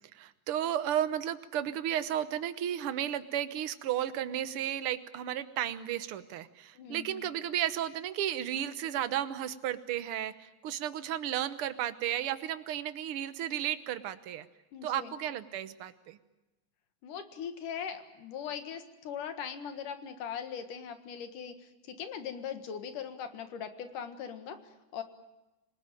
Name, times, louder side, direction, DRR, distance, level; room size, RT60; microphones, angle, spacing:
voice 1, 0.1-14.5 14.8-16.2, right 11 dB, 60° right, 12 dB, 1.5 m, -33 dB
voice 2, 6.7-7.3 14.7-15.1 17.0-25.0, left 7 dB, 85° left, 8 dB, 3.2 m, -40 dB
26.0 x 19.0 x 9.0 m, 1.0 s
omnidirectional pair, 3.6 m